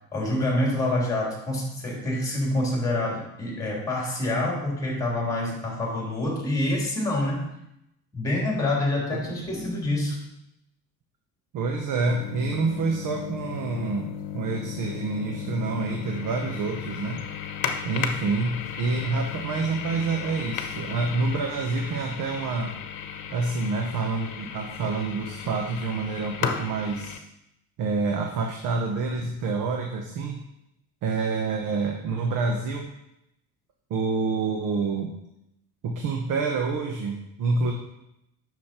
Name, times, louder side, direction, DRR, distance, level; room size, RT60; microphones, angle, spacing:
voice 1, 0.1-7.4 8.1-10.2, left 1 dB, 10° left, -2 dB, 3.2 m, -26 dB
voice 2, 11.5-17.2 17.8-22.7 23.3-27.2 27.8-30.4 31.0-32.9 33.9-35.1 35.8-37.7, right 4 dB, 60° right, 2 dB, 1.1 m, -27 dB
sound 1, 12.1-27.2, left 8 dB, 60° left, 1.0 m, -35 dB
8.6 x 6.3 x 4.4 m, 0.82 s
cardioid pair, 125°, 37 cm